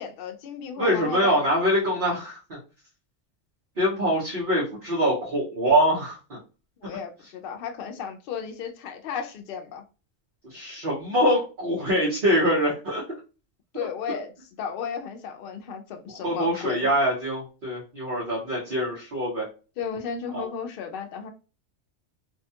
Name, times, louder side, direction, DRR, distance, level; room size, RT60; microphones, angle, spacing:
voice 1, 0.0-1.4 6.8-9.8 13.7-14.3 14.6-16.8 19.8-21.3, left 7 dB, 60° left, 0.6 m, -34 dB
voice 2, 0.8-2.4 3.8-6.4 10.5-13.0 16.2-19.4 20.3-20.5, equal, 45° right, 1.0 m, -24 dB
2.7 x 2.2 x 2.7 m
omnidirectional pair, 1.3 m